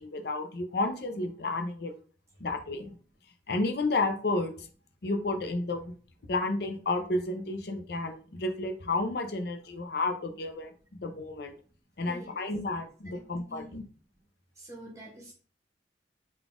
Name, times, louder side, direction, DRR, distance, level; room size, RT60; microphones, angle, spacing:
voice 1, 0.0-1.9 2.4-2.9 3.5-4.7 5.0-5.9 6.3-11.5 12.0-13.8, left 2 dB, 55° left, 6 dB, 0.6 m, -31 dB
voice 2, 13.0-13.8 14.5-15.3, equal, 15° right, -3 dB, 1.3 m, -47 dB
3.9 x 2.4 x 3.6 m, 0.40 s
head